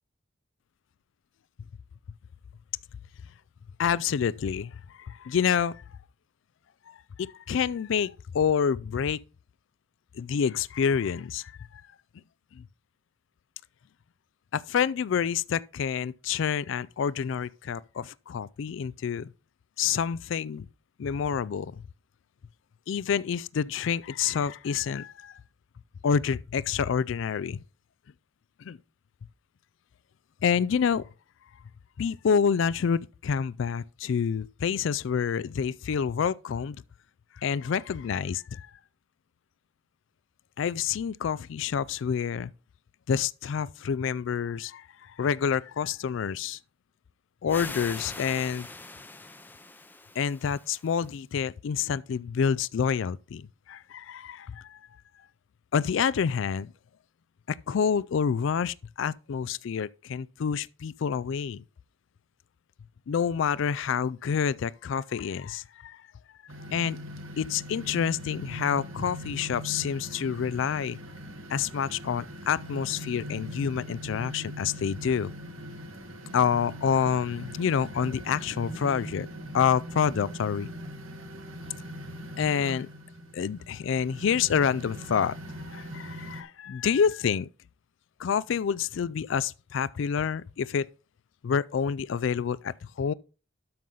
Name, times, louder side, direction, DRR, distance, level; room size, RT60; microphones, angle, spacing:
voice 1, 3.8-5.8 6.9-9.2 10.2-11.8 12.5-12.7 14.5-19.3 19.8-20.7 21.0-21.8 22.9-25.4 26.0-27.6 28.6-28.8 30.4-31.1 32.0-36.8 37.4-38.7 40.6-42.5 43.1-46.6 47.4-48.7 50.2-54.8 55.7-56.7 57.5-61.6 63.1-66.0 66.7-67.0 67.4-71.0 71.5-75.3 76.3-79.3 79.5-80.7 82.4-82.9 83.3-85.4 85.7-87.5 88.2-90.9 91.4-93.1, left 7 dB, 65° left, 0.3 m, -28 dB
sound 1, 47.5-51.1, left 2 dB, 10° left, 0.6 m, -42 dB
sound 2, 66.5-86.4, equal, 80° right, 1.6 m, -41 dB
12.5 x 5.5 x 3.8 m
head